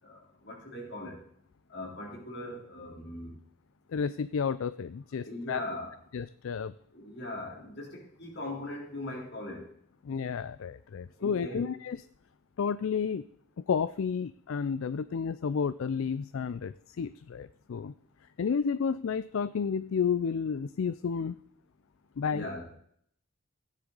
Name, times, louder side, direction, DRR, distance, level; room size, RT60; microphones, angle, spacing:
voice 1, 0.0-1.2 1.7-3.4 5.2-6.0 6.9-9.7 11.2-11.7 22.3-22.7, left 1 dB, 50° left, -1 dB, 3.7 m, -40 dB
voice 2, 3.9-5.6 6.1-6.7 10.1-12.0 12.6-13.2 13.7-17.9 18.4-21.4 22.2-22.4, left 6 dB, 70° left, 16 dB, 0.4 m, -31 dB
15.5 x 9.9 x 3.9 m, 0.66 s
head